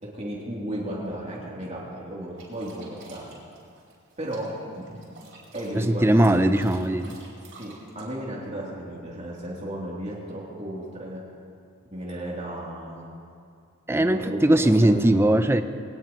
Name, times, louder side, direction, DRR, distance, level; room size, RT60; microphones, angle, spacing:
voice 1, 0.0-3.3 4.2-5.0 5.5-6.5 7.5-11.2 11.9-13.1 14.0-15.3, right 1 dB, 30° right, -6 dB, 3.2 m, -34 dB
sound 1, 2.4-8.0, right 3 dB, 55° right, 4.7 m, -49 dB
voice 2, 5.7-7.1 13.9-15.6, right 1 dB, 10° right, 9 dB, 0.5 m, -20 dB
22.5 x 18.0 x 3.1 m, 2.3 s
head